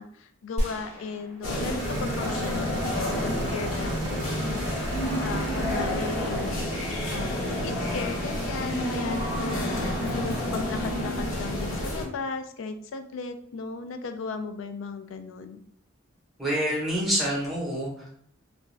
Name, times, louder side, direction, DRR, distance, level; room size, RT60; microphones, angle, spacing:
voice 1, 0.0-4.8 5.2-6.7 7.1-15.6, left 4 dB, 70° left, 8 dB, 0.3 m, -36 dB
sound 1, 0.6-2.5 2.8-2.9, equal, 35° left, 0.6 m, -34 dB
sound 2, 1.4-12.0, left 1 dB, 85° left, 0.8 m, -29 dB
sound 3, 1.8-8.6, right 3 dB, 55° right, 0.5 m, -43 dB
voice 2, 16.4-18.1, equal, ahead, -5 dB, 0.8 m, -27 dB
2.5 x 2.2 x 3.1 m, 0.66 s
head